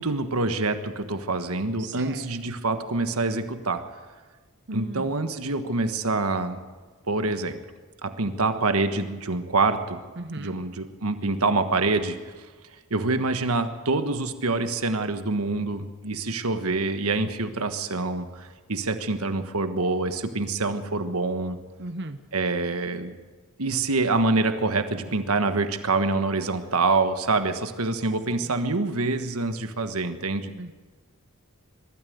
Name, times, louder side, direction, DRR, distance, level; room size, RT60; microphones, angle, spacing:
voice 1, 0.0-3.8 4.7-6.6 7.1-7.6 8.0-10.0 10.4-12.2 12.9-21.6 22.3-23.1 23.6-30.5, right 3 dB, 90° right, 9 dB, 1.4 m, -26 dB
voice 2, 1.8-2.3 4.7-5.2 10.2-10.6 21.8-22.2 28.3-28.6 30.5-30.7, right 2 dB, 55° right, 8 dB, 1.0 m, -37 dB
22.0 x 13.0 x 9.3 m, 1.4 s
head